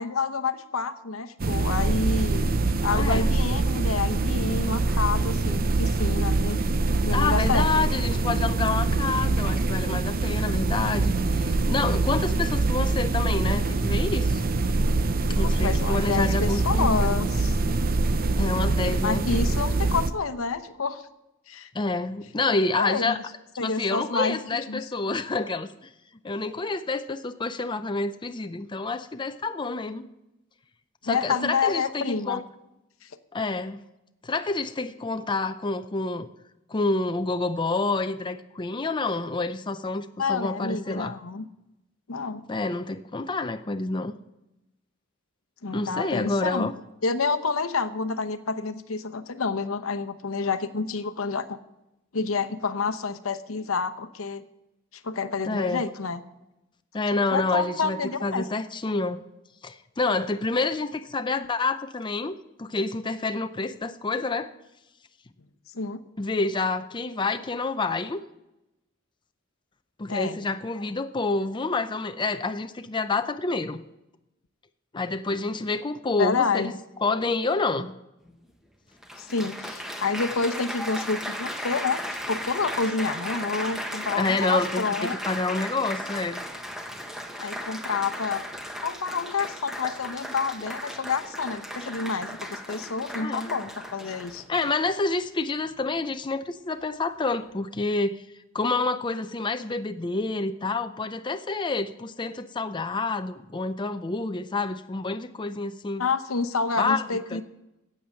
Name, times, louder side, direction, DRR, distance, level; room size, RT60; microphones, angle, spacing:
voice 1, 0.0-2.5 2.8-6.6 7.0-7.8 15.4-17.6 19.0-21.0 21.5-21.7 22.8-23.1 23.6-24.9 31.0-32.4 33.0-33.1 40.2-41.5 42.1-42.4 45.6-46.7 47.0-51.6 52.1-54.4 54.9-56.2 57.3-58.5 65.7-66.0 70.1-70.4 76.2-76.7 79.2-85.2 87.4-88.4 88.8-94.4 106.0-107.4, left 4 dB, 80° left, 10 dB, 0.9 m, -28 dB
sound 1, 1.4-20.1, right 3 dB, 45° right, 0.7 m, -24 dB
voice 2, 2.9-3.3 7.1-14.4 15.3-17.2 18.3-19.2 21.7-23.2 23.6-25.7 26.2-30.1 31.0-32.4 33.3-33.8 34.2-36.3 36.7-41.2 42.5-44.1 45.7-46.7 55.5-55.8 56.9-59.2 59.6-64.5 66.2-68.2 70.0-73.8 74.9-76.7 77.0-77.9 84.2-86.4 93.2-93.5 94.5-98.2 98.5-106.0 106.8-107.0 107.3-107.4, left 3 dB, 25° left, 9 dB, 0.5 m, -28 dB
Applause, 78.3-78.4 79.0-94.9 95.7-96.0, equal, ahead, 1.3 m, -36 dB
15.0 x 8.7 x 7.7 m, 0.93 s
head